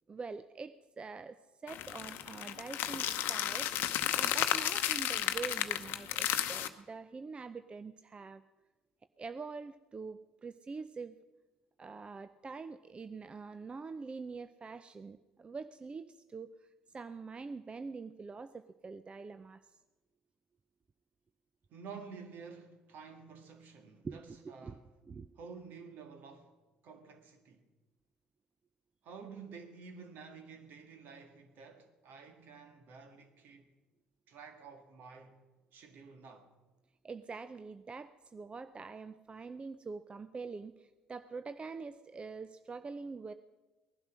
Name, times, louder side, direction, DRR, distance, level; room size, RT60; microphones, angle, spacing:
voice 1, 0.1-3.7 4.1-8.4 9.2-11.2 11.8-19.8 24.0-25.3 37.0-43.3, right 4 dB, 30° right, 0.5 m, -45 dB
sound 1, 1.7-6.7, left 12 dB, 65° left, 0.8 m, -33 dB
voice 2, 21.7-24.8 25.4-26.5 26.8-27.6 29.0-33.7 34.3-35.4 35.7-36.5, right 5 dB, 60° right, 1.9 m, -51 dB
18.5 x 11.5 x 6.2 m
hypercardioid pair, 60°, 4 cm